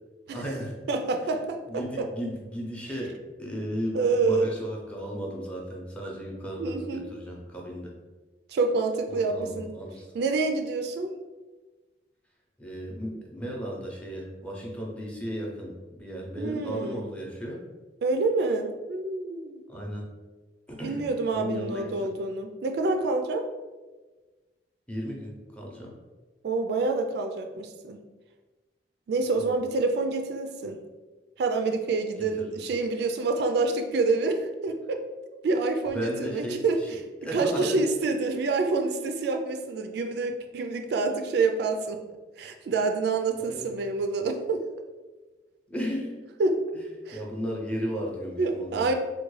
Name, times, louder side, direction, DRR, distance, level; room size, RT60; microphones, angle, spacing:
voice 1, 0.3-0.7 1.7-7.9 9.1-10.1 12.6-17.6 19.7-20.1 20.7-21.0 21.3-22.1 24.9-25.9 29.4-29.5 32.4-32.6 35.9-36.9 37.2-37.8 43.3-43.8 45.7-46.2 46.7-46.8 47.1-48.9, equal, 5° left, -2 dB, 0.6 m, -35 dB
voice 2, 0.9-2.1 3.9-4.5 6.6-7.0 8.5-9.7 10.1-11.1 16.4-17.0 18.0-19.6 20.8-23.5 26.4-28.0 29.1-30.8 31.4-35.0 35.4-36.8 37.3-42.0 42.4-44.6 46.4-46.5 47.1-47.2 48.4-48.9, right 3 dB, 65° right, 5 dB, 0.3 m, -27 dB
3.5 x 2.2 x 3.1 m, 1.3 s
head